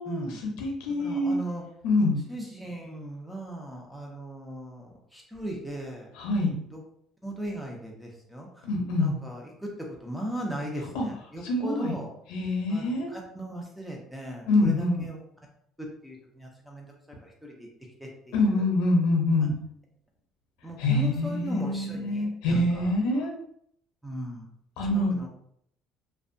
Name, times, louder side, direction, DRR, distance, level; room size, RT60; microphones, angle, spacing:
voice 1, 0.0-0.4 1.0-1.6 2.3-6.1 6.7-6.8 7.2-8.6 9.0-12.1 12.7-15.2 16.0-16.9 17.2-17.7 18.0-18.6 20.6-22.9 24.0-24.5 25.1-25.3, right 1 dB, ahead, -1 dB, 0.5 m, -38 dB
voice 2, 0.6-1.4 1.8-2.2 6.2-6.6 8.6-9.2 10.9-11.1 11.4-11.9 12.3-13.1 14.5-15.1 18.3-19.5 20.8-23.3 24.8-25.2, left 2 dB, 85° left, 1 dB, 0.6 m, -25 dB
2.6 x 2.2 x 2.6 m, 0.68 s
cardioid pair, 160°, 0 cm